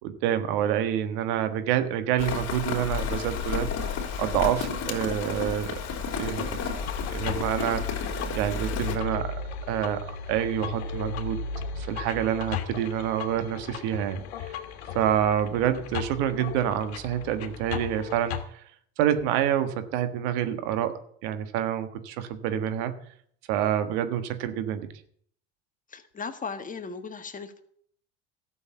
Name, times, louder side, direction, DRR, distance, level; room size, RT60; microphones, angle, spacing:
voice 1, 0.0-3.9 4.2-5.8 6.2-8.1 8.3-9.3 9.7-11.4 11.8-14.6 14.9-18.6 19.0-23.0 23.5-24.9, right 10 dB, 75° right, 10 dB, 1.5 m, -27 dB
Rain, 2.2-9.0, left 6 dB, 55° left, 3.2 m, -31 dB
sound 1, 6.2-18.4, left 5 dB, 85° left, 1.6 m, -36 dB
voice 2, 25.9-27.6, left 5 dB, 25° left, 8 dB, 1.5 m, -37 dB
13.0 x 7.0 x 8.1 m, 0.63 s
supercardioid pair, 95°, 31 cm